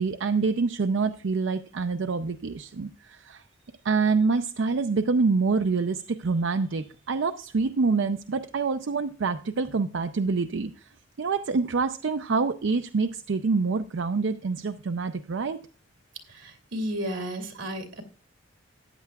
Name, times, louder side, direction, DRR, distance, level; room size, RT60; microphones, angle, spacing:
voice 1, 0.0-3.4 3.8-10.9 11.2-15.6, right 4 dB, 65° right, 9 dB, 0.5 m, -26 dB
voice 2, 16.3-18.0, equal, 90° right, 3 dB, 2.4 m, -33 dB
14.0 x 9.7 x 2.3 m, 0.39 s
head